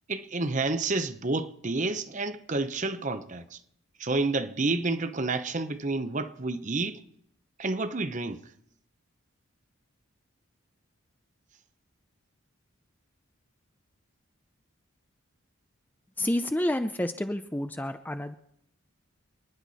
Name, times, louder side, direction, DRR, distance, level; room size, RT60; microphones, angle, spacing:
voice 1, 0.1-3.6 4.0-7.0 7.6-8.4, right 3 dB, 35° right, 0.8 m, -29 dB
voice 2, 16.2-18.4, left 1 dB, 10° left, 0.5 m, -29 dB
28.5 x 10.0 x 4.2 m
head